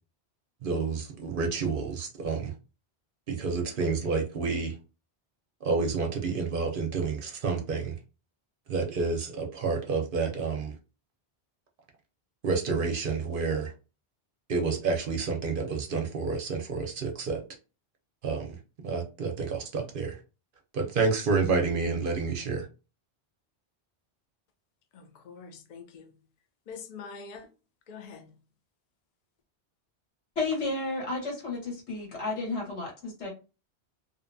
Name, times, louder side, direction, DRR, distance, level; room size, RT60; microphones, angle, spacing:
voice 1, 0.6-2.5 3.3-4.8 5.6-8.0 8.7-10.7 12.4-13.7 14.5-17.4 18.2-18.6 18.8-20.2 20.7-22.7, right 4 dB, 60° right, 0.7 m, -29 dB
voice 2, 24.9-26.2 26.7-27.5 27.9-28.4, left 5 dB, 55° left, 0.4 m, -45 dB
voice 3, 30.4-33.3, left 3 dB, 85° left, 1.4 m, -32 dB
2.6 x 2.2 x 2.5 m
omnidirectional pair, 1.1 m